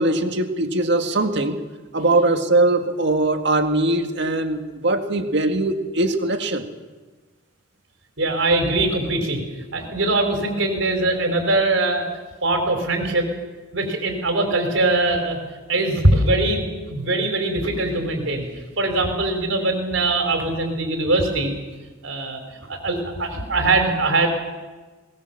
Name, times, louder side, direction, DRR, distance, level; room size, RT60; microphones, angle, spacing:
voice 1, 0.0-1.6 1.9-6.7, right 2 dB, 60° right, 6 dB, 2.0 m, -21 dB
voice 2, 8.2-9.4 9.7-12.1 12.4-13.3 13.7-15.4 15.7-18.5 18.8-21.5 22.0-22.4 22.7-24.3, right 2 dB, 80° right, 4 dB, 4.6 m, -21 dB
20.5 x 19.5 x 7.4 m, 1.3 s
head